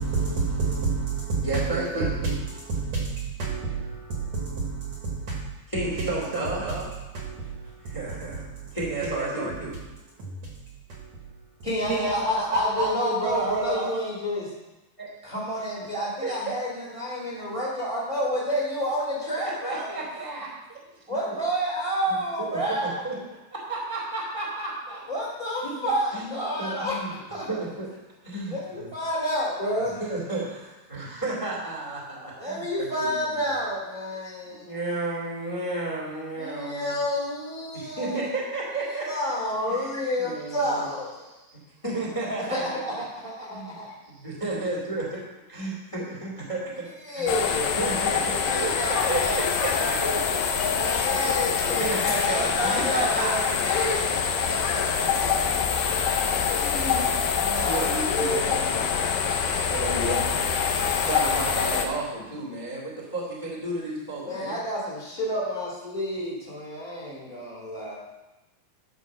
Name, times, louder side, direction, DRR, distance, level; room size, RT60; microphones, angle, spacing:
voice 1, 0.0-5.5 6.0-6.9 7.1-8.8 9.0-9.8 10.2-10.6 10.9-11.4 11.9-14.0, right 3 dB, 60° right, 2.1 m, -30 dB
voice 2, 1.4-2.1 5.7-6.6 7.8-8.2 8.7-9.5 15.0-15.3 16.2-16.6 19.6-20.8 21.1-21.2 22.4-23.2 23.5-25.0 25.6-26.3 26.6-27.1 27.5-27.9 28.2-28.8 30.0-33.3 34.6-37.0 37.7-39.1 39.7-39.9 40.2-40.9 41.5-43.0 43.5-43.8 44.0-45.0 45.5-46.9 47.1-47.3 47.8-51.5 51.8-53.9 56.8-57.1 57.6-59.1 59.7-60.2 61.0-64.6, right 2 dB, 15° left, 1.3 m, -32 dB
voice 3, 11.6-14.5 15.2-19.9 21.1-23.0 25.1-27.6 28.5-30.0 32.3-34.7 36.3-38.3 38.7-41.3 42.5-42.7 43.0-44.0 47.0-49.9 50.6-53.6 54.1-55.3 56.5-58.7 59.3-61.4 64.2-67.9, equal, 15° right, 1.5 m, -30 dB
sound 1, 47.3-61.9, left 7 dB, 75° left, 2.3 m, -25 dB
12.0 x 5.1 x 6.2 m
omnidirectional pair, 4.4 m